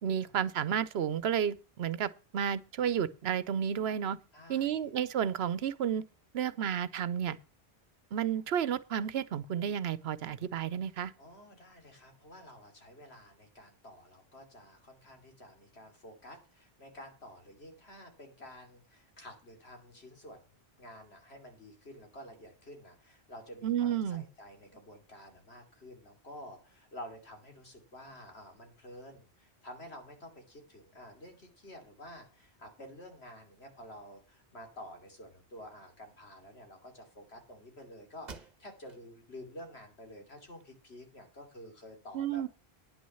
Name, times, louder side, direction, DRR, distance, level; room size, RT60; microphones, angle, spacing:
voice 1, 0.0-4.2 4.5-6.0 6.3-7.4 8.1-11.1 23.6-24.2 42.1-42.5, right 9 dB, 80° right, 1.0 m, -31 dB
voice 2, 4.3-4.8 11.2-20.4 20.8-42.5, left 1 dB, 80° left, 3.2 m, -50 dB
sound 1, 38.3-39.1 39.5-39.6 40.2-41.1, right 4 dB, 45° right, 1.2 m, -51 dB
10.0 x 6.2 x 7.0 m
omnidirectional pair, 1.1 m